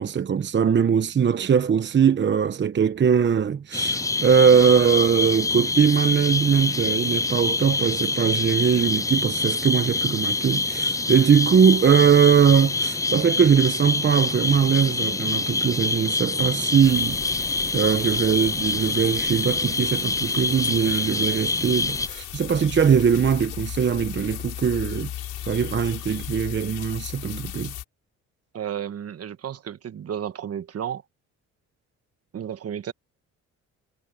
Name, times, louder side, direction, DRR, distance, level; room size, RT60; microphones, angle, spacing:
voice 1, 0.0-25.1 25.4-27.7, right 7 dB, 40° right, 0.9 m, -21 dB
sound 1, 3.7-22.1, left 3 dB, 10° left, 0.4 m, -26 dB
sound 2, 16.8-27.8, left 11 dB, 75° left, 6.4 m, -36 dB
voice 2, 28.5-31.0 32.3-32.9, right 9 dB, 55° right, 1.3 m, -32 dB
cardioid pair, 90°, 30 cm